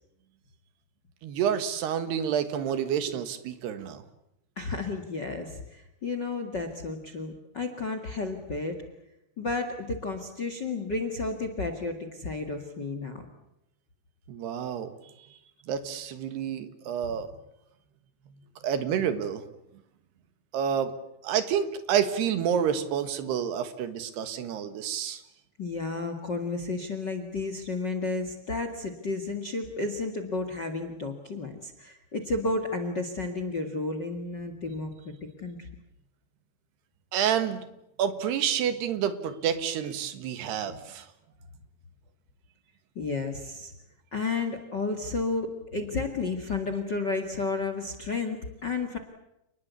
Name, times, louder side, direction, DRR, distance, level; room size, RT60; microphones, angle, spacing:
voice 1, 1.2-4.0 14.3-14.9 15.7-17.3 18.6-19.4 20.5-20.9 21.2-25.2 37.1-37.7 38.0-41.1, right 8 dB, 75° right, 11 dB, 3.6 m, -29 dB
voice 2, 4.5-8.8 9.4-13.2 25.6-35.7 42.9-43.7 44.1-49.0, left 3 dB, 40° left, 8 dB, 1.7 m, -32 dB
29.0 x 20.5 x 8.3 m, 0.84 s
omnidirectional pair, 4.9 m